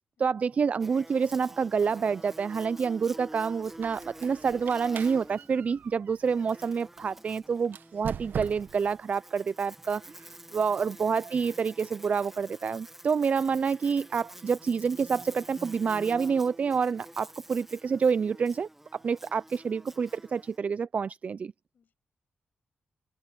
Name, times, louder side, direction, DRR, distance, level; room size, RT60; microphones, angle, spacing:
voice 1, 0.0-21.5, right 6 dB, 45° right, 0.3 m, -28 dB
Buzz, 0.8-20.6, right 1 dB, 10° right, 1.2 m, -48 dB
Squeak, 3.7-6.8 7.6-8.9, right 8 dB, 70° right, 0.9 m, -41 dB
voice 2, 10.2-10.6 19.2-19.4 21.7-21.9, left 7 dB, 65° left, 6.2 m, -70 dB
cardioid pair, 90°, 3 cm